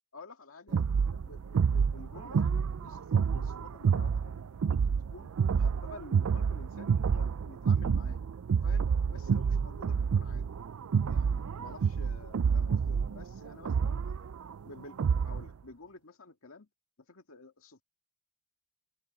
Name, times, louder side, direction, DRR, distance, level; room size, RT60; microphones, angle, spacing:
voice 1, 0.1-8.2 8.6-10.5 11.0-14.2 14.6-16.7 17.1-17.8, left 3 dB, 75° left, 2.1 m, -51 dB
sound 1, 0.7-15.5, right 6 dB, 90° right, 0.4 m, -29 dB
open air
head